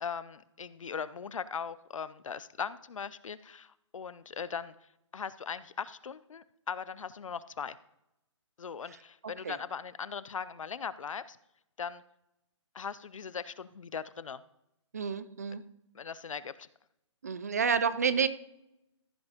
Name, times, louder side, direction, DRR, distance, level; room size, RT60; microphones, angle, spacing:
voice 1, 0.0-4.7 5.1-7.8 8.6-11.4 11.8-12.0 12.7-14.4 15.9-16.7, left 6 dB, 85° left, 17 dB, 0.6 m, -39 dB
voice 2, 14.9-15.6 17.2-18.3, right 6 dB, 30° right, 14 dB, 0.4 m, -29 dB
14.5 x 4.9 x 5.0 m, 0.86 s
hypercardioid pair, 170°, 16 cm